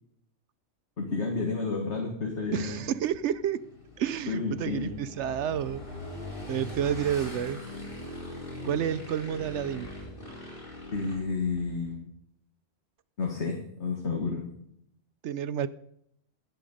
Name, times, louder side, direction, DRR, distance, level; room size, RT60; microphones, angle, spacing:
voice 1, 1.0-2.8 4.3-4.9 10.9-12.1 13.2-14.4, left 4 dB, 60° left, 1 dB, 2.1 m, -31 dB
Motorcycle / Engine, 2.3-11.9, left 1 dB, 45° left, 5.0 m, -42 dB
voice 2, 2.5-3.6 4.0-5.8 6.5-7.6 8.6-9.9 15.2-15.7, right 9 dB, 70° right, 16 dB, 0.9 m, -30 dB
15.5 x 7.8 x 5.3 m, 0.72 s
omnidirectional pair, 1.3 m